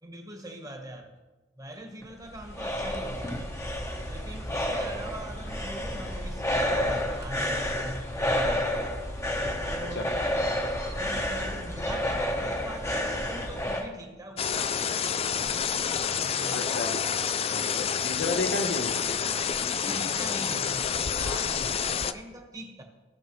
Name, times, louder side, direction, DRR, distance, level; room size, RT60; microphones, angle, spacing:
voice 1, 0.0-1.1 1.6-3.6 4.1-8.9 9.6-10.2 10.8-16.8 19.8-22.8, right 1 dB, 20° right, 2 dB, 1.3 m, -42 dB
sound 1, 2.0-13.9, left 1 dB, 15° left, 1.0 m, -30 dB
sound 2, 14.4-22.1, left 7 dB, 30° left, 0.3 m, -28 dB
voice 2, 16.4-17.0 17.5-19.3, left 2 dB, 60° left, 5 dB, 1.0 m, -33 dB
16.5 x 6.4 x 3.1 m, 1.2 s
head